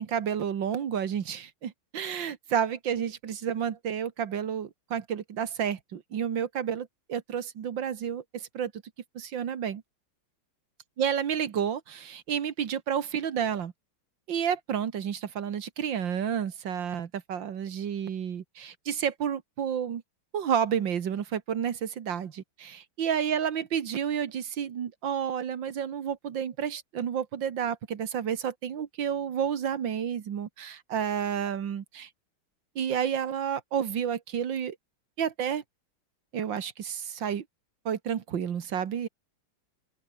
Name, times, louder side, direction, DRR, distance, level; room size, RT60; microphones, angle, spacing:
voice 1, 0.0-8.7 9.2-9.8 11.0-13.7 14.3-20.0 20.3-32.1 32.8-34.8 35.2-35.6 36.3-37.4 37.9-39.1, right 8 dB, 65° right, 2.1 m, -30 dB
open air
omnidirectional pair, 2.2 m